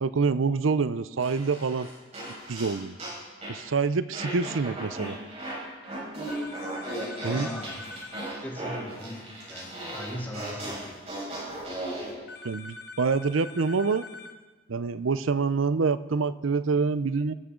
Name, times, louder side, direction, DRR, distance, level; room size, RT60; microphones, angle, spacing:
voice 1, 0.0-1.9 2.5-3.0 3.5-5.2 7.2-7.5 12.4-14.0 14.7-17.3, right 4 dB, 80° right, 15 dB, 0.6 m, -26 dB
sound 1, 1.2-3.6 4.1-12.1, right 1 dB, 35° right, 5.4 m, -36 dB
sound 2, 6.3-8.4 12.3-14.4, left 3 dB, 55° left, 1.2 m, -44 dB
voice 2, 7.2-7.8 8.4-11.0, equal, 10° left, -3 dB, 3.1 m, -39 dB
24.0 x 14.0 x 3.8 m, 1.3 s
head